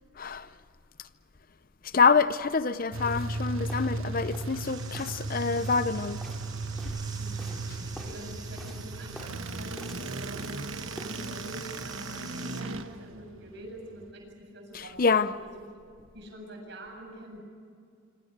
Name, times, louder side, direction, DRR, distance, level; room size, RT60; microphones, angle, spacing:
voice 1, 0.2-0.5 1.0-1.1 1.8-6.2 14.7-15.3, left 5 dB, 45° left, 0.7 m, -26 dB
sound 1, 2.9-14.1, right 2 dB, 85° right, 1.4 m, -36 dB
sound 2, 3.1-3.3 3.7-4.0 4.3-4.6 4.9-5.2 5.5-7.1 7.4-7.7 7.9-8.2 8.6-8.9 9.1-9.4 9.8-10.6 11.0-11.2, equal, ahead, 2.7 m, -48 dB
sound 3, 4.6-12.6, right 5 dB, 20° right, 3.5 m, -47 dB
voice 2, 7.2-7.6 8.0-10.6 11.1-15.6 16.1-17.4, equal, 55° right, 7.9 m, -45 dB
26.0 x 26.0 x 6.7 m
head